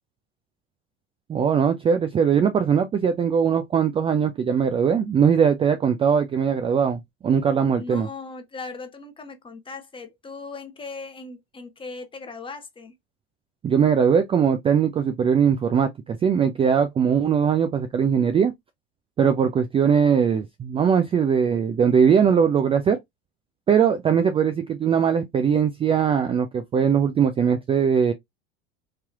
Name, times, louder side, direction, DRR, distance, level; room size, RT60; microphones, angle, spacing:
voice 1, 1.3-8.1 13.6-18.5 19.2-23.0 23.7-28.1, right 7 dB, 20° right, 0.3 m, -20 dB
voice 2, 7.7-12.9, left 3 dB, 15° left, 0.8 m, -38 dB
3.2 x 2.9 x 2.3 m
hypercardioid pair, 95°, 30 cm